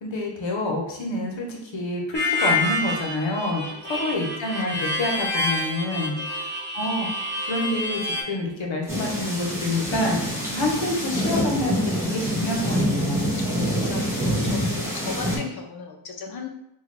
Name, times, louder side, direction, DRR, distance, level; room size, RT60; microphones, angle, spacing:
voice 1, 0.0-13.3, left 2 dB, 75° left, 0 dB, 0.9 m, -28 dB
Harmonica, 2.1-8.2, left 1 dB, 25° right, 1.1 m, -27 dB
sound 1, 8.9-15.4, equal, 5° right, 1.4 m, -26 dB
voice 2, 13.4-16.5, left 5 dB, 55° left, 4 dB, 0.7 m, -37 dB
3.6 x 2.3 x 3.2 m, 0.80 s
cardioid pair, 55°, 46 cm